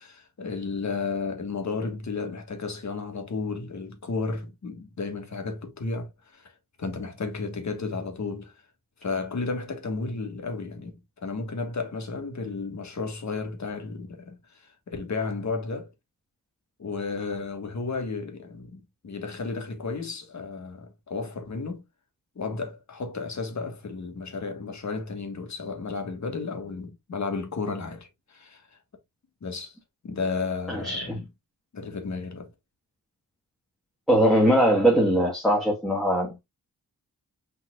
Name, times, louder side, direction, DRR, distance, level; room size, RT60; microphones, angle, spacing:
voice 1, 0.0-8.5 9.0-15.9 16.8-21.8 22.3-28.8 29.4-29.8 30.0-31.3 31.7-32.5, left 4 dB, 50° left, 1.4 m, -33 dB
voice 2, 30.7-31.2 34.1-36.4, right 1 dB, ahead, 1.3 m, -21 dB
5.4 x 4.1 x 2.3 m
wide cardioid pair, 95°, 36 cm